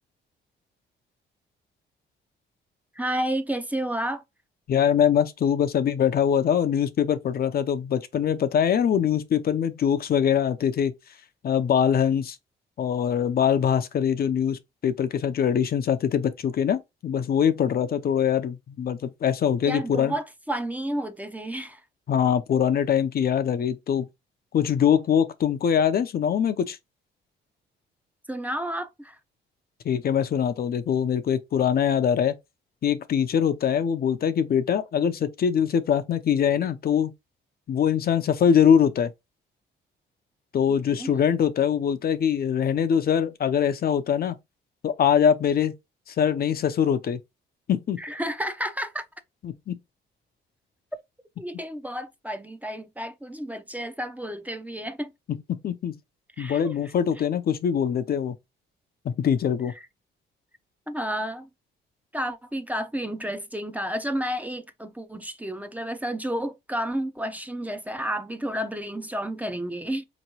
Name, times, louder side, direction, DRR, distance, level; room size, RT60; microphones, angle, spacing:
voice 1, 2.9-4.2 19.7-21.8 28.3-29.2 40.9-41.1 48.0-49.1 51.4-55.1 56.4-56.7 59.8-59.9 60.9-61.5 62.1-70.0, right 1 dB, 10° right, 0.6 m, -31 dB
voice 2, 4.7-10.9 11.4-12.4 12.8-20.1 22.1-24.1 24.5-26.8 29.8-32.4 32.8-37.1 37.7-39.1 40.5-44.4 44.8-45.7 46.1-47.2 47.7-48.0 49.4-49.8 55.6-55.9 56.4-58.3 59.0-59.7, left 8 dB, 50° left, 0.6 m, -23 dB
4.3 x 3.0 x 2.8 m
cardioid pair, 90°, 20 cm